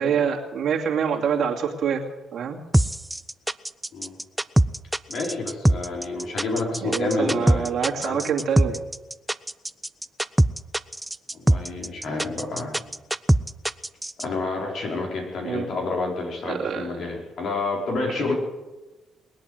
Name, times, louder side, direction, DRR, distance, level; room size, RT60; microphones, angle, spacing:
voice 1, 0.0-2.0 2.3-2.6 6.8-8.8 15.4-15.7 16.5-16.9, right 7 dB, 65° right, 0 dB, 2.5 m, -25 dB
sound 1, 2.7-14.2, right 1 dB, 5° right, 0.5 m, -22 dB
voice 2, 5.1-7.7 8.0-8.2 11.3-12.8 14.2-18.3, left 3 dB, 65° left, -1 dB, 4.7 m, -29 dB
21.0 x 8.6 x 7.8 m, 1.1 s
cardioid pair, 90°, 0 cm